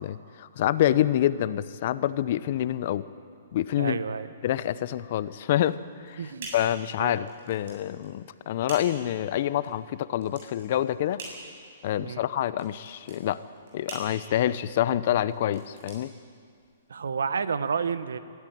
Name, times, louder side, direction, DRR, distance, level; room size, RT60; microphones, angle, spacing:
voice 1, 0.0-3.0 3.5-4.0 4.4-5.8 6.0-6.2 6.5-11.2 11.8-13.4 13.7-16.1, left 12 dB, 55° left, 15 dB, 0.8 m, -27 dB
voice 2, 3.8-4.3 6.2-6.5 7.0-7.2 12.0-12.2 16.9-18.2, right 6 dB, 80° right, 13 dB, 1.1 m, -30 dB
sound 1, 5.5-16.9, right 3 dB, 60° right, 7.9 m, -46 dB
23.5 x 13.5 x 9.3 m, 2.2 s
hypercardioid pair, 135°, 0 cm